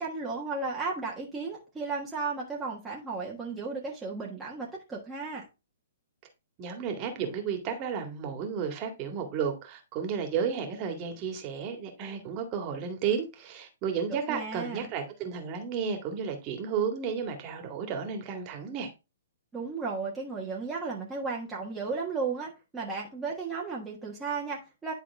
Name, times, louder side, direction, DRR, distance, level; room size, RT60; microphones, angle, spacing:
voice 1, 0.0-5.4 14.1-14.9 19.5-24.9, right 4 dB, 10° right, 1.5 m, -34 dB
voice 2, 6.6-18.9, right 6 dB, 35° right, 2.0 m, -32 dB
10.5 x 3.7 x 3.5 m
hypercardioid pair, 125°, 0 cm